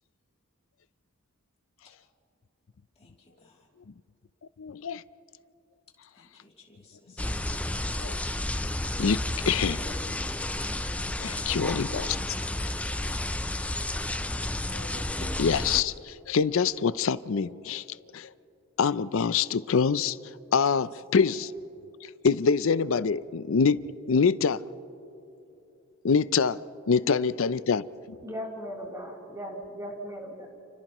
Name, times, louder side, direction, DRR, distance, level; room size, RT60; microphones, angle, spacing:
voice 1, 2.9-3.7 6.1-7.3 20.8-21.0, left 4 dB, 30° left, -2 dB, 2.9 m, -60 dB
voice 2, 4.6-5.0 8.0-8.2 9.0-10.1 11.2-12.2 14.7-17.8 18.1-18.3 18.8-20.2 20.5-21.5 22.2-23.8 24.1-24.6 26.0-26.6 26.9-27.8, left 5 dB, 65° left, 17 dB, 0.5 m, -25 dB
sound 1, 7.2-15.8, left 1 dB, 5° left, 0.4 m, -31 dB
voice 3, 28.2-30.5, equal, 15° right, -3 dB, 3.4 m, -38 dB
29.5 x 29.5 x 3.0 m, 2.9 s
head